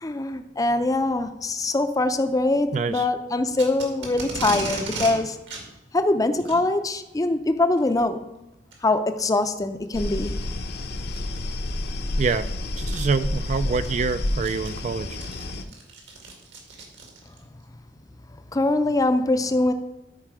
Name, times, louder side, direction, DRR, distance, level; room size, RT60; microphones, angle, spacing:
voice 1, 0.0-5.4 5.9-8.2 8.8-10.3 18.5-19.7, left 2 dB, 20° left, 0.5 m, -23 dB
voice 2, 2.7-3.1 12.2-12.5 12.8-15.2, right 4 dB, 40° right, 0.3 m, -26 dB
Packing tape duct tape, 3.5-5.1 5.5-5.6 6.4-6.6 7.8-8.0 8.7-8.8 9.4-9.5 11.1-11.4 12.5-12.6 12.9-13.0 13.5-17.4, right 3 dB, 75° right, 2.1 m, -35 dB
sound 1, 9.9-15.6, left 1 dB, 60° left, 0.8 m, -29 dB
12.5 x 4.7 x 4.8 m
head